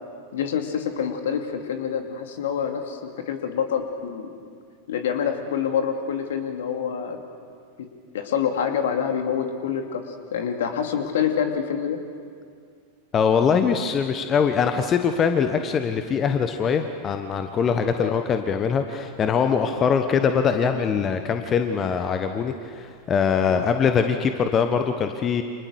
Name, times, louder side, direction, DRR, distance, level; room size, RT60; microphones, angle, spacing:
voice 1, 0.3-4.5 4.9-7.2 7.8-7.9 8.1-10.0 10.3-12.0 18.0-18.1 23.5-23.6, left 8 dB, 60° left, 5 dB, 2.7 m, -26 dB
voice 2, 13.1-25.4, left 6 dB, 25° left, 7 dB, 1.3 m, -22 dB
30.0 x 27.0 x 6.5 m, 2.1 s
figure-of-eight pair, 90°, 0 cm